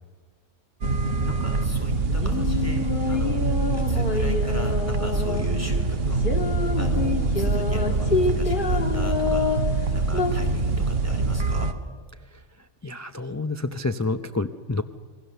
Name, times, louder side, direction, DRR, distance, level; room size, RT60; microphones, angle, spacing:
sound 1, 0.8-11.7, right 3 dB, 55° right, 1.3 m, -25 dB
voice 1, 1.2-11.7, left 1 dB, 10° right, 4 dB, 2.7 m, -36 dB
sound 2, 1.8-10.3, left 4 dB, 45° left, 2.0 m, -28 dB
voice 2, 12.8-14.8, left 3 dB, 20° left, 9 dB, 0.4 m, -28 dB
27.5 x 21.5 x 6.8 m, 1.5 s
omnidirectional pair, 1.3 m